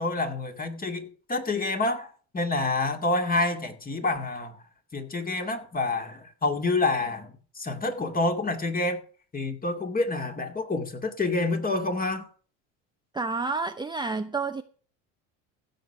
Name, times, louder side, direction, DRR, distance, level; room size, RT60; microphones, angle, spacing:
voice 1, 0.0-4.6 4.9-9.0 9.3-12.3, left 2 dB, 20° left, 2.3 m, -28 dB
voice 2, 13.1-14.6, right 4 dB, 10° right, 0.8 m, -29 dB
15.5 x 6.6 x 5.7 m
hypercardioid pair, 80°, 39 cm